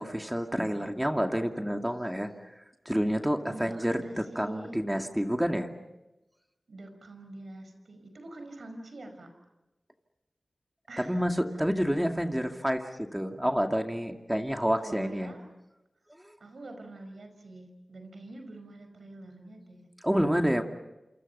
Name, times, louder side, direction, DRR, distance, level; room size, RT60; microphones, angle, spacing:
voice 1, 0.0-2.3 2.9-5.7 11.0-15.3 16.2-16.4 20.0-20.6, equal, 10° right, 4 dB, 2.4 m, -28 dB
voice 2, 3.5-4.8 6.7-9.3 10.9-11.6 14.8-15.4 16.4-19.9, right 2 dB, 80° right, 6 dB, 5.2 m, -45 dB
28.0 x 27.5 x 5.6 m, 0.98 s
cardioid pair, 45°, 0 cm